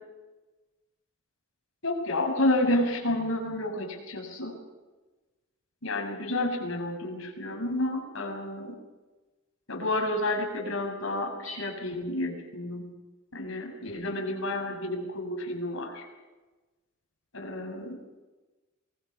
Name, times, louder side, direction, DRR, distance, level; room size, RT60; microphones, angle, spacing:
voice 1, 1.8-4.6 5.8-8.8 9.7-12.9 13.3-16.1 17.3-18.0, left 1 dB, 70° left, 1 dB, 7.3 m, -30 dB
27.0 x 23.0 x 6.1 m, 1.2 s
head